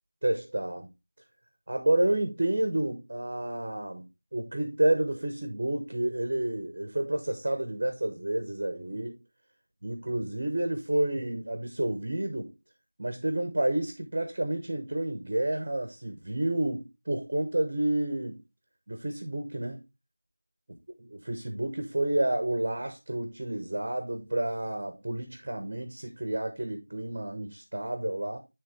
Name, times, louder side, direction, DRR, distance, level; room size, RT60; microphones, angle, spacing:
voice 1, 0.2-0.9 1.7-4.1 4.3-9.2 9.8-12.5 13.0-18.4 18.9-19.8 21.1-28.4, right 1 dB, 30° right, 0.8 m, -30 dB
9.8 x 3.5 x 3.3 m
figure-of-eight pair, 180°, 0 cm